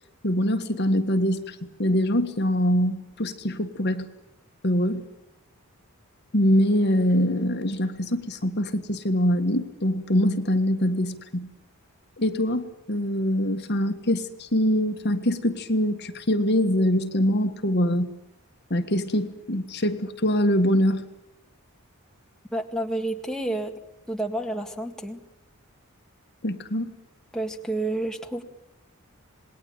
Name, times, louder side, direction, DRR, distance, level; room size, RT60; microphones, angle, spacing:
voice 1, 0.2-4.1 4.6-5.0 6.3-11.5 12.2-18.1 18.7-21.0 26.4-26.9, equal, 50° left, 7 dB, 1.7 m, -24 dB
voice 2, 22.5-23.7 24.1-25.2 27.3-28.4, right 1 dB, 5° left, 2 dB, 1.9 m, -29 dB
27.5 x 20.5 x 9.0 m, 0.86 s
head